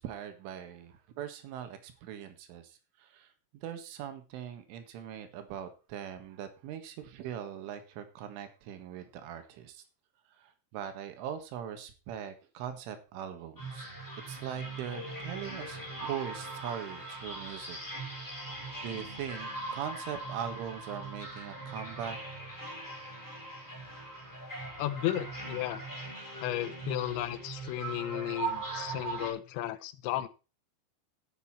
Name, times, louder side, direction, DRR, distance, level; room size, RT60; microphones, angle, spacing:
voice 1, 0.0-9.8 10.3-13.9 14.3-17.8 18.3-18.5 18.8-22.2, right 9 dB, 85° right, 8 dB, 4.1 m, -41 dB
sound 1, 13.6-29.3, right 3 dB, 5° left, 4.5 m, -40 dB
voice 2, 24.8-25.9 26.4-30.3, left 13 dB, 80° left, 13 dB, 3.1 m, -34 dB
10.5 x 9.5 x 4.3 m, 0.32 s
omnidirectional pair, 5.4 m